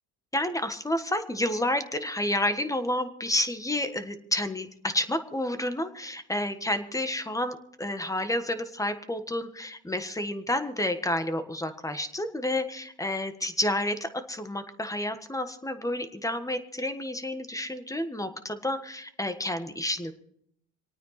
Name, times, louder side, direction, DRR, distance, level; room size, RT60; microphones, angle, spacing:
voice 1, 0.3-20.1, left 1 dB, 10° left, 9 dB, 1.4 m, -30 dB
27.5 x 9.2 x 4.3 m, 0.69 s
supercardioid pair, 90°, 41 cm